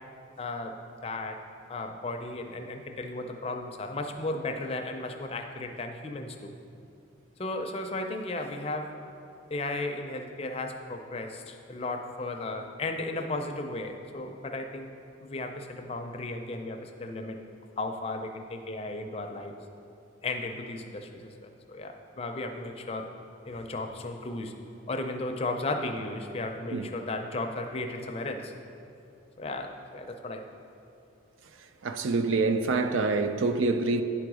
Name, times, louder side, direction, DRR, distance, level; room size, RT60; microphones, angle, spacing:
voice 1, 0.4-1.4 1.7-6.5 7.4-9.0 9.5-14.9 15.2-17.4 17.8-19.5 20.2-23.1 23.5-24.6 24.9-28.5 29.4-30.4, left 2 dB, 30° left, 0.4 m, -35 dB
voice 2, 31.8-34.0, right 3 dB, 80° right, 0.4 m, -26 dB
10.0 x 3.9 x 4.8 m
head